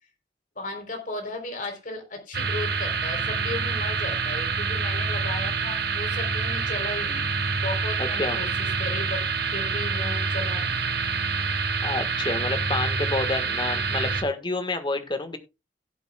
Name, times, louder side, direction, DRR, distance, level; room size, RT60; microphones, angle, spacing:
voice 1, 0.6-10.8, left 2 dB, 50° left, 4 dB, 3.7 m, -36 dB
sound 1, 2.3-14.2, right 4 dB, 60° right, 1.5 m, -27 dB
voice 2, 8.0-8.4 11.8-15.4, left 2 dB, 25° left, 8 dB, 1.5 m, -29 dB
17.5 x 8.2 x 2.3 m, 0.25 s
head